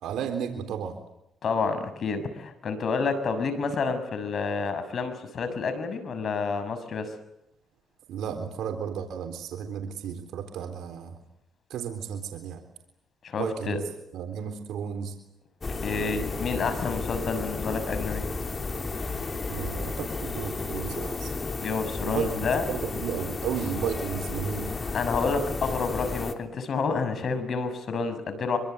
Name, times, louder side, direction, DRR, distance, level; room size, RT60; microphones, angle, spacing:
voice 1, 0.0-1.0 8.1-11.1 11.7-12.6 13.4-13.8 14.1-15.1 19.5-21.3 22.0-24.7, right 8 dB, 80° right, 6 dB, 3.7 m, -33 dB
voice 2, 1.4-7.1 13.2-13.8 15.8-18.3 21.6-23.0 24.9-28.6, left 4 dB, 55° left, 10 dB, 6.6 m, -29 dB
sound 1, 15.6-26.3, left 4 dB, 30° left, 3.4 m, -33 dB
26.0 x 24.5 x 8.2 m, 0.81 s
cardioid pair, 90°, 0 cm